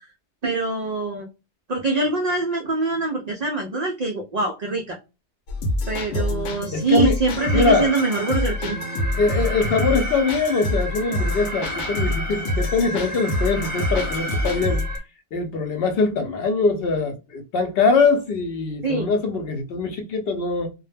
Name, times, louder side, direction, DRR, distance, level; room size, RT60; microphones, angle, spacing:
voice 1, 0.4-1.3 1.7-5.0 5.9-8.8 18.8-19.1, right 3 dB, 65° right, 0.4 m, -24 dB
sound 1, 5.5-15.0, left 1 dB, 90° left, 0.9 m, -27 dB
voice 2, 6.7-7.2 7.5-7.9 9.2-14.8 15.3-20.7, left 4 dB, 65° left, 0.7 m, -22 dB
Alarm, 7.4-15.0, right 1 dB, 20° right, 0.7 m, -32 dB
2.2 x 2.0 x 3.2 m
omnidirectional pair, 1.2 m